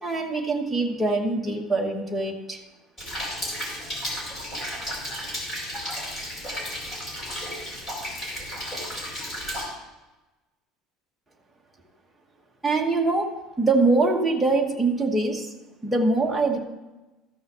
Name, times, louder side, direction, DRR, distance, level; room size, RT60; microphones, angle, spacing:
voice 1, 0.0-2.6 12.6-15.5 15.8-16.6, right 3 dB, 5° right, -1 dB, 1.1 m, -23 dB
Rain, 3.0-9.6, equal, 25° left, 4.1 m, -33 dB
13.5 x 5.5 x 6.7 m, 1.1 s
cardioid pair, 175°, 0 cm